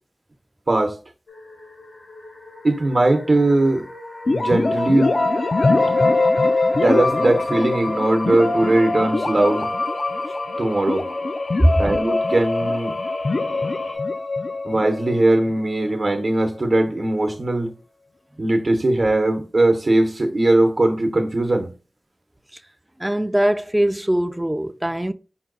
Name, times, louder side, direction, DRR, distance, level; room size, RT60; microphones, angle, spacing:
sound 1, 1.3-14.0, left 2 dB, 90° left, 1.2 m, -33 dB
voice 1, 2.6-3.9 4.3-5.1 6.8-9.7 10.6-11.1 11.8-13.0 14.6-17.7 18.4-21.7, right 2 dB, 60° right, 0.8 m, -19 dB
sound 2, 4.3-16.0, left 3 dB, 65° left, 0.3 m, -23 dB
voice 2, 23.0-25.1, equal, 15° right, 0.3 m, -20 dB
5.6 x 2.3 x 3.8 m
wide cardioid pair, 65°, 0 cm